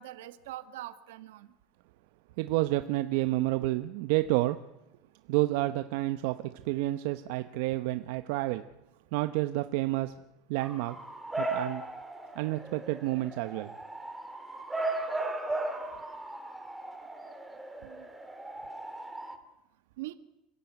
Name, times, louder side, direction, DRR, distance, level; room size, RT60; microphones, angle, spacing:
voice 1, 0.0-1.5 17.8-18.1 20.0-20.2, right 15 dB, 90° right, 11 dB, 1.7 m, -42 dB
voice 2, 2.4-4.6 5.3-8.6 9.1-10.1 10.5-11.0 11.4-11.8 12.4-13.7, right 17 dB, 70° right, 10 dB, 0.9 m, -29 dB
Bark / Motor vehicle (road) / Siren, 10.6-19.3, right 2 dB, 5° right, 2.6 m, -37 dB
27.0 x 15.5 x 9.3 m, 0.91 s
supercardioid pair, 140°, 0 cm